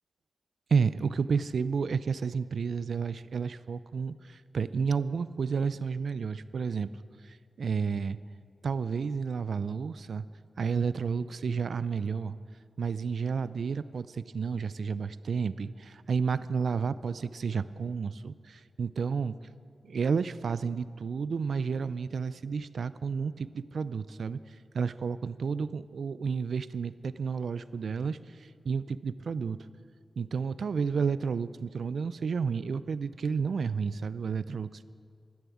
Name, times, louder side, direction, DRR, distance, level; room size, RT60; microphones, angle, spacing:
voice 1, 0.7-6.9 7.2-8.2 8.6-10.2 10.6-12.4 12.8-19.4 19.8-29.7 30.2-34.8, right 5 dB, 80° right, 16 dB, 0.4 m, -31 dB
13.0 x 10.5 x 8.5 m, 2.3 s
cardioid pair, 65°, 0 cm